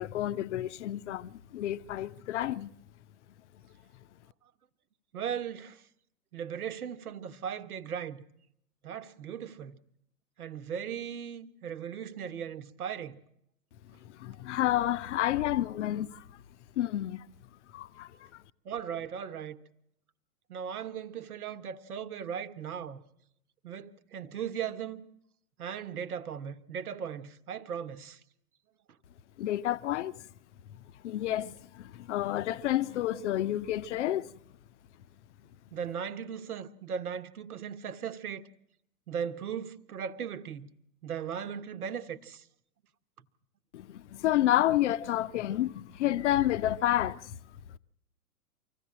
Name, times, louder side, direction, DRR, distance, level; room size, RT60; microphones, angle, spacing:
voice 1, 0.0-2.7 14.0-16.4 16.8-17.3 17.7-18.4 29.4-30.3 30.7-34.3 43.7-47.4, left 13 dB, 50° left, 0.7 m, -30 dB
voice 2, 5.1-5.8 6.3-8.2 8.8-9.8 10.4-13.2 18.6-19.6 20.5-23.0 23.6-25.1 25.6-28.2 35.7-38.4 39.1-40.7 41.0-42.4, right 8 dB, 65° right, 1.3 m, -37 dB
25.0 x 15.5 x 7.5 m
figure-of-eight pair, 110°, 47 cm